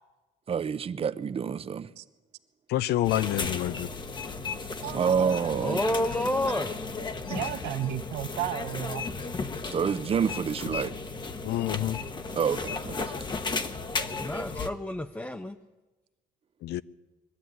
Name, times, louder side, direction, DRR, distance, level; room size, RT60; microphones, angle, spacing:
voice 1, 0.5-1.9 4.9-5.8 9.7-10.9 12.3-13.1, right 7 dB, 35° right, 0.7 m, -28 dB
voice 2, 2.7-3.9 11.4-12.0 16.6-16.8, left 14 dB, 75° left, 0.6 m, -27 dB
sound 1, 3.0-14.7, left 4 dB, 25° left, 1.1 m, -34 dB
voice 3, 4.8-5.3 7.3-9.0 10.6-10.8 12.0-12.4, right 13 dB, 85° right, 0.8 m, -34 dB
voice 4, 5.6-6.8 14.2-15.6, left 1 dB, 10° left, 0.6 m, -29 dB
22.0 x 12.5 x 9.4 m
cardioid pair, 110°, 17 cm